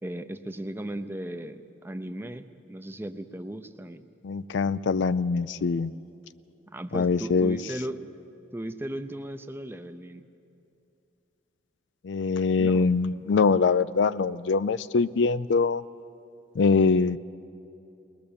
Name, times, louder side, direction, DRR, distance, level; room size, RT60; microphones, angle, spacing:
voice 1, 0.0-4.0 6.7-8.1 8.5-10.2 12.6-12.9, right 1 dB, 10° right, 10 dB, 0.6 m, -36 dB
voice 2, 4.2-5.9 6.9-7.6 12.0-15.8 16.6-17.2, left 4 dB, 70° left, 15 dB, 0.4 m, -23 dB
21.0 x 20.5 x 7.0 m, 2.7 s
head